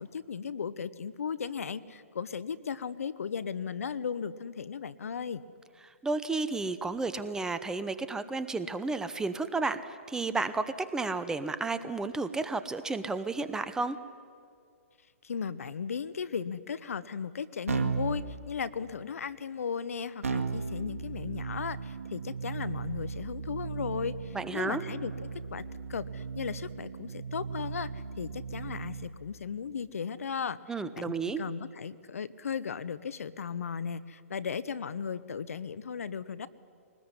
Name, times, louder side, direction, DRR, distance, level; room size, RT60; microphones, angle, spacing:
voice 1, 0.0-5.4 15.2-25.6 25.9-30.6 30.9-36.5, left 6 dB, 70° left, 16 dB, 0.9 m, -36 dB
voice 2, 5.8-14.0 24.3-24.8 30.7-31.4, right 3 dB, 5° right, 12 dB, 0.9 m, -32 dB
Keyboard (musical), 17.7-18.2 20.2-29.1, right 5 dB, 70° right, 2.0 m, -36 dB
22.0 x 19.5 x 9.8 m, 2.3 s
hypercardioid pair, 130°, 8 cm